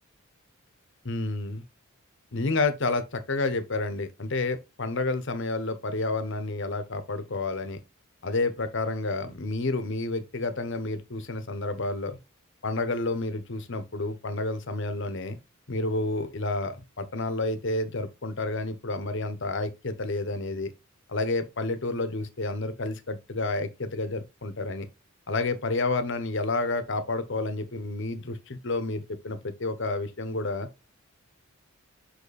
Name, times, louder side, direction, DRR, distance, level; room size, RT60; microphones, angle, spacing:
voice 1, 1.0-1.6 2.3-7.8 8.2-12.2 12.6-15.4 15.7-20.7 21.1-24.9 25.3-30.8, left 2 dB, 60° left, 1.0 m, -30 dB
5.8 x 5.5 x 4.1 m
head